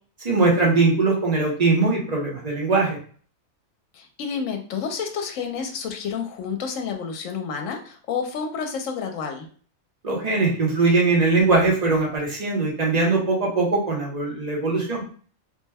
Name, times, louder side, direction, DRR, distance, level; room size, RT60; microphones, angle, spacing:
voice 1, 0.2-3.0 10.0-15.0, right 3 dB, 35° right, -1 dB, 0.9 m, -21 dB
voice 2, 3.9-9.5, left 6 dB, 75° left, 4 dB, 1.0 m, -30 dB
3.2 x 2.1 x 3.3 m, 0.44 s
omnidirectional pair, 1.4 m